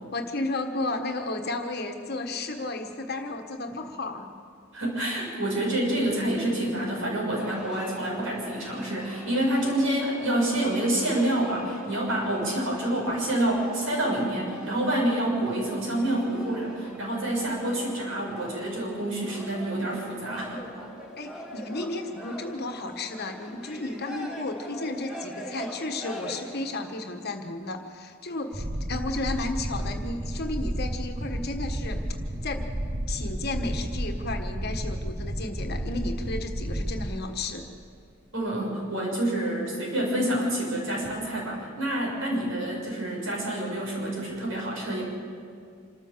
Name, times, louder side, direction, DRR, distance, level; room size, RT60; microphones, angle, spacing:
voice 1, 0.1-4.3 21.2-32.0 32.4-32.7 33.1-37.7, left 2 dB, 50° left, 4 dB, 1.4 m, -33 dB
voice 2, 4.7-20.6 38.3-45.0, right 1 dB, 75° right, -3 dB, 6.9 m, -27 dB
sound 1, 7.4-26.9, equal, 5° right, 2.7 m, -43 dB
sound 2, 28.5-37.2, right 1 dB, 30° right, 0.8 m, -32 dB
26.5 x 14.0 x 7.3 m, 2.3 s
head